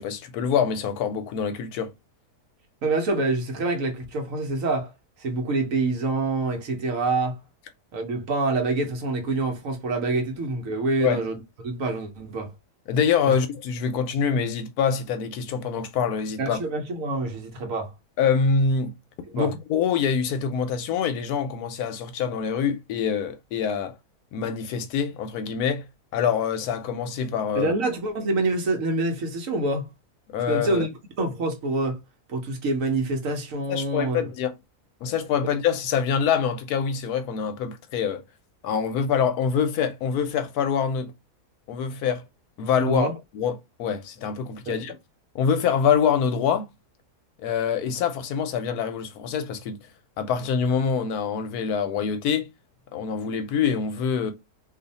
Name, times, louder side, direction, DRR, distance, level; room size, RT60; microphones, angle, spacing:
voice 1, 0.0-1.9 11.0-11.2 12.9-16.6 18.2-18.9 19.3-23.9 24.3-25.9 26.1-27.7 30.3-30.9 33.7-34.5 35.0-38.2 38.6-41.1 41.7-42.2 42.6-43.1 43.3-44.9 45.3-46.7 47.4-49.8 50.2-52.5 52.9-54.3, left 7 dB, 75° left, 1.1 m, -25 dB
voice 2, 2.8-4.9 5.2-7.4 7.9-11.3 11.6-12.5 16.4-17.9 19.3-19.5 27.6-29.9 30.5-30.9 31.2-32.0 32.3-34.3 42.8-43.1 44.7-44.8, right 2 dB, 60° right, 1.1 m, -26 dB
2.6 x 2.5 x 4.0 m
omnidirectional pair, 1.7 m